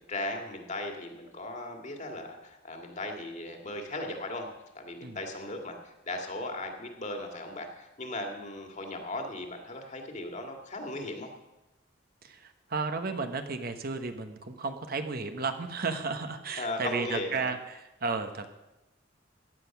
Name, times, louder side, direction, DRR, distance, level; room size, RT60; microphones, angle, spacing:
voice 1, 0.0-11.3 16.6-17.5, left 2 dB, 40° left, 3 dB, 2.1 m, -37 dB
voice 2, 12.2-18.5, right 4 dB, 50° right, 7 dB, 1.0 m, -33 dB
15.0 x 9.9 x 5.9 m, 0.99 s
head